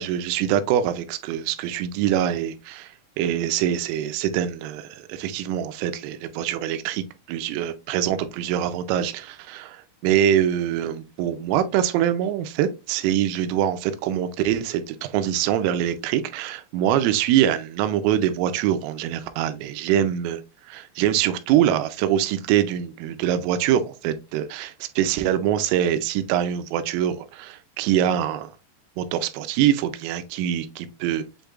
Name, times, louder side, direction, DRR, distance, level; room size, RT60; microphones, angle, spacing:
voice 1, 0.0-20.4 20.7-28.5 29.0-31.2, right 10 dB, 85° right, 3.1 m, -24 dB
7.8 x 2.9 x 2.3 m
omnidirectional pair, 6.0 m